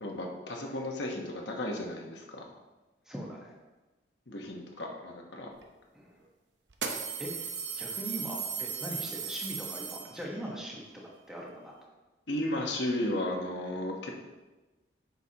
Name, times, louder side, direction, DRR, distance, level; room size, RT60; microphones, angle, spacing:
voice 1, 0.0-2.4 4.3-5.5 12.3-14.1, left 1 dB, 75° left, 0 dB, 1.1 m, -34 dB
voice 2, 3.0-3.6 5.9-6.2 7.2-11.8, equal, 5° right, -3 dB, 1.2 m, -41 dB
sound 1, 5.6-5.7 6.7-10.5, right 6 dB, 80° right, 0.8 m, -37 dB
8.1 x 5.9 x 2.9 m, 1.1 s
head